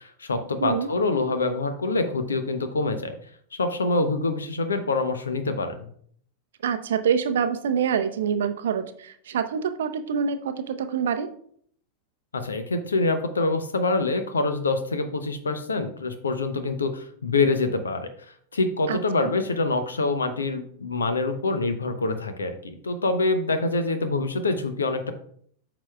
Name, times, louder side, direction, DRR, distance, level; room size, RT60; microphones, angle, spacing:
voice 1, 0.0-3.2 3.5-5.9 12.3-25.1, left 3 dB, 75° left, 9 dB, 0.7 m, -25 dB
voice 2, 6.6-11.3 18.9-19.3, right 7 dB, 60° right, 10 dB, 0.6 m, -26 dB
8.6 x 5.9 x 2.3 m, 0.62 s
figure-of-eight pair, 90°, 0 cm